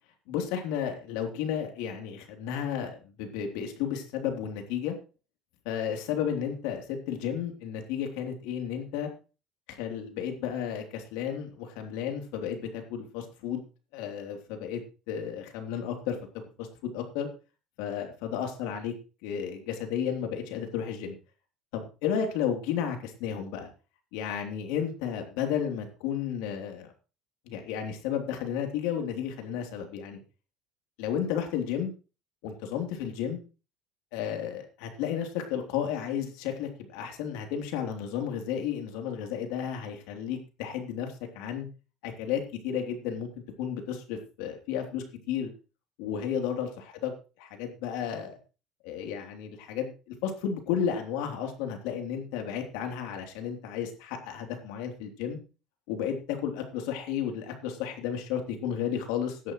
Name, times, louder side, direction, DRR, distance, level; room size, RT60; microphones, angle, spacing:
voice 1, 0.3-4.9 5.6-9.1 9.7-13.6 13.9-14.8 15.1-16.2 16.6-17.3 17.8-18.9 19.2-21.2 21.7-23.7 24.1-26.9 27.5-30.2 31.0-31.9 32.4-33.4 34.1-41.7 42.0-43.3 43.6-45.5 46.0-47.1 47.4-48.3 48.8-55.4 55.9-59.5, left 8 dB, 85° left, 4 dB, 3.3 m, -33 dB
16.5 x 11.0 x 3.2 m, 0.34 s
cardioid pair, 145°, 0 cm